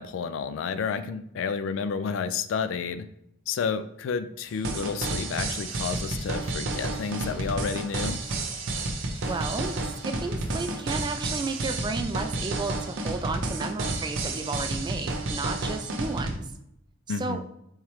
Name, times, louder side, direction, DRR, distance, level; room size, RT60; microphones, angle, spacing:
voice 1, 0.0-3.1 3.5-8.2 17.1-17.4, left 5 dB, 80° left, 11 dB, 0.3 m, -30 dB
sound 1, 4.4-11.8, left 1 dB, 25° left, 0.7 m, -52 dB
sound 2, 4.6-16.4, right 2 dB, 80° right, 0.6 m, -31 dB
voice 2, 9.2-16.5 17.2-17.4, right 3 dB, 25° right, 7 dB, 0.3 m, -33 dB
3.6 x 3.1 x 3.0 m, 0.77 s
head